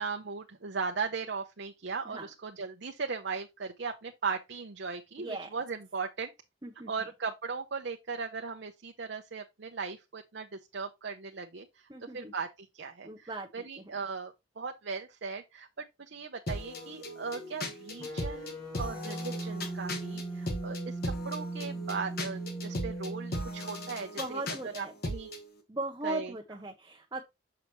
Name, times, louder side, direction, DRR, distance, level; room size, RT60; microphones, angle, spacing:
voice 1, 0.0-6.3 6.9-10.5 10.7-11.7 12.1-12.5 12.7-25.3 26.0-26.3, right 5 dB, 65° right, 0.7 m, -38 dB
voice 2, 5.2-5.6 6.6-6.9 11.9-12.3 13.0-13.9 24.2-24.9 25.7-27.2, right 2 dB, 20° right, 0.7 m, -38 dB
sound 1, 16.5-25.4, left 1 dB, 55° left, 1.6 m, -38 dB
sound 2, 18.0-24.1, right 2 dB, 20° left, 1.8 m, -39 dB
6.8 x 5.7 x 3.1 m
head